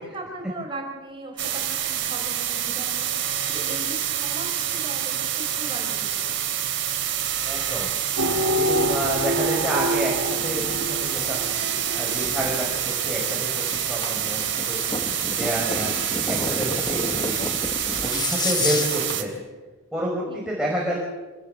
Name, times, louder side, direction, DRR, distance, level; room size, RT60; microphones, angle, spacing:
voice 1, 0.0-6.4 11.8-12.1 20.2-20.4, right 1 dB, 25° right, 0 dB, 5.2 m, -38 dB
sound 1, 1.4-19.2, right 11 dB, 55° right, 3.4 m, -27 dB
voice 2, 7.4-8.0 8.3-11.5 12.0-17.5 18.0-19.3 19.9-21.0, right 1 dB, 5° right, -3 dB, 5.4 m, -29 dB
sound 2, 8.2-19.2, left 3 dB, 20° left, 1.3 m, -33 dB
sound 3, 8.2-12.2, equal, 85° right, 1.8 m, -27 dB
26.5 x 19.5 x 7.9 m, 1.2 s
head